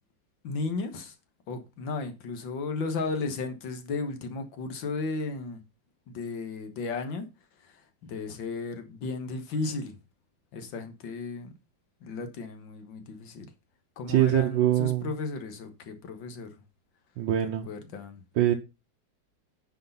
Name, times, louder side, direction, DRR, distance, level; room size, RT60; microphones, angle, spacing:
voice 1, 0.4-1.1 1.5-5.6 6.1-7.3 7.6-10.0 10.5-11.5 12.0-13.5 14.0-16.5 17.7-18.2, left 3 dB, 75° left, 2.1 m, -34 dB
voice 2, 14.1-15.1 17.2-17.7 18.4-18.5, right 13 dB, 75° right, 1.5 m, -23 dB
9.8 x 4.9 x 5.5 m
omnidirectional pair, 2.1 m